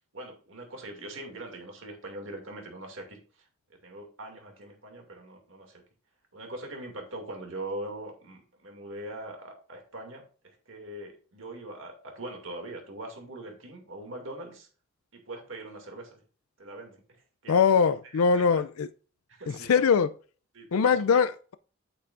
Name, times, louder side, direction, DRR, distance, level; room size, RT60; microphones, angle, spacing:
voice 1, 0.1-3.2 3.7-5.8 6.3-14.7 15.1-16.2 16.6-17.0 17.4-17.6 18.1-18.6 19.3-19.7 20.5-21.2, right 1 dB, 65° right, 2.4 m, -42 dB
voice 2, 17.5-18.9 19.5-20.1 20.7-21.5, left 6 dB, 85° left, 0.4 m, -22 dB
8.7 x 8.4 x 2.5 m
head